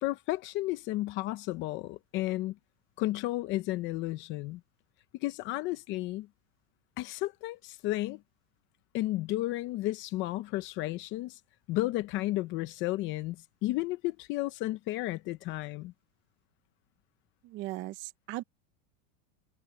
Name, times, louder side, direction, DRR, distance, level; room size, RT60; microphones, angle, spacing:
voice 1, 0.0-2.6 3.0-4.6 5.2-6.3 7.0-8.2 8.9-11.4 11.7-15.9, left 17 dB, 30° left, 0.8 m, -33 dB
voice 2, 17.4-18.4, right 17 dB, 30° right, 0.8 m, -38 dB
supercardioid pair, 165°, 36 cm